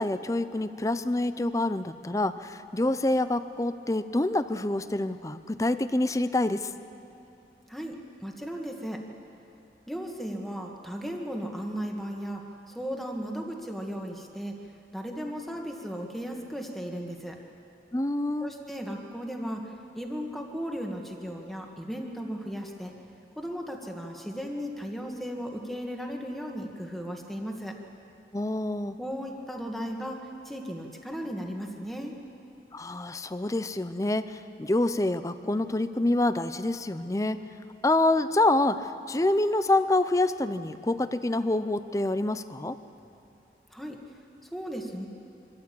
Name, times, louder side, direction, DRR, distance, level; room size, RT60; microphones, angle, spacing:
voice 1, 0.0-6.7 17.9-18.5 28.3-29.0 32.7-37.4 37.8-42.8, left 2 dB, 20° left, 12 dB, 0.5 m, -27 dB
voice 2, 8.2-9.0 9.9-12.4 12.7-14.5 14.9-17.4 18.4-22.9 23.3-27.8 29.0-30.2 30.4-32.1 43.7-44.0 44.4-45.1, equal, ahead, 1 dB, 1.7 m, -36 dB
24.5 x 14.0 x 8.5 m, 2.8 s
head